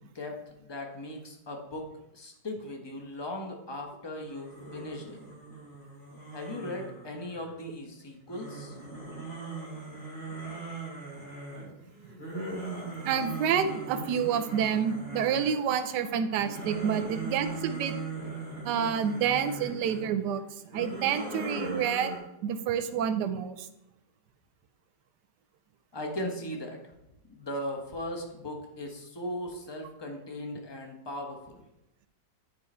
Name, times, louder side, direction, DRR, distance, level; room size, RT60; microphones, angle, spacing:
voice 1, 0.0-1.9 2.1-5.2 6.3-8.8 25.9-26.9 27.3-31.6, left 1 dB, 25° left, 2 dB, 0.6 m, -38 dB
sound 1, 4.3-7.7 8.3-15.7 16.1-20.0 20.6-22.2, right 3 dB, 85° left, 3.4 m, -40 dB
voice 2, 13.0-17.9 18.6-20.4 20.7-22.2 22.4-23.7, right 8 dB, 75° right, 10 dB, 1.2 m, -28 dB
8.9 x 4.6 x 4.3 m, 0.87 s
omnidirectional pair, 1.9 m